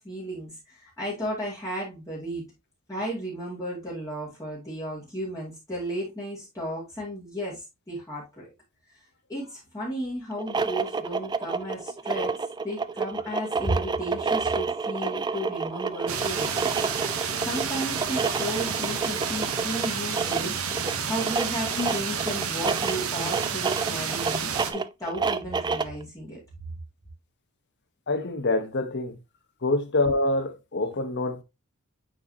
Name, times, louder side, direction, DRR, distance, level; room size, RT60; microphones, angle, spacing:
voice 1, 0.0-2.5 2.9-8.5 9.3-12.3 12.6-16.7 17.0-20.6 21.0-26.4, equal, 15° left, 2.3 m, -34 dB
sound 1, 10.3-26.0, right 4 dB, 20° right, 0.4 m, -29 dB
sound 2, 16.1-24.7, right 6 dB, 75° right, 1.0 m, -30 dB
voice 2, 28.1-29.2 29.6-31.4, left 2 dB, 55° left, 1.0 m, -26 dB
9.2 x 4.1 x 2.8 m
head